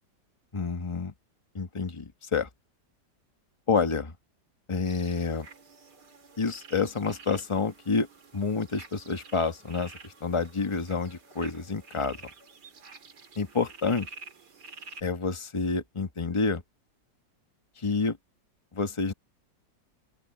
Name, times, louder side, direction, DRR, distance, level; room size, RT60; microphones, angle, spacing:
voice 1, 0.5-1.1 1.5-2.5 3.7-4.1 4.7-5.5 6.4-8.1 8.3-12.2 13.4-14.1 15.0-16.6 17.8-18.2 18.7-19.1, left 4 dB, 20° left, 1.2 m, -28 dB
sound 1, 4.9-15.0, right 4 dB, 65° right, 3.3 m, -49 dB
open air
omnidirectional pair, 1.9 m